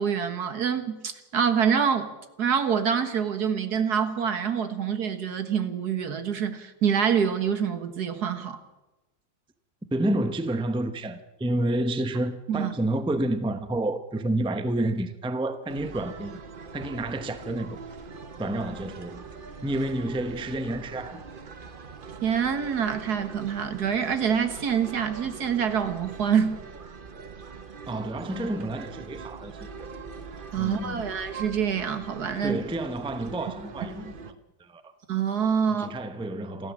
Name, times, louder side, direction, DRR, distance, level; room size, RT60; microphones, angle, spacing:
voice 1, 0.0-2.1 2.4-8.6 12.5-12.7 22.2-26.6 30.5-32.6 35.1-35.9, right 7 dB, 70° right, 2.0 m, -26 dB
voice 2, 9.9-16.4 16.7-17.8 18.4-19.2 19.6-21.3 27.9-29.5 29.8-29.9 30.6-31.1 32.4-34.9 35.7-36.7, right 1 dB, 5° right, 0.7 m, -29 dB
sound 1, 15.7-34.3, right 5 dB, 40° right, 1.0 m, -42 dB
28.0 x 12.5 x 7.4 m
omnidirectional pair, 1.8 m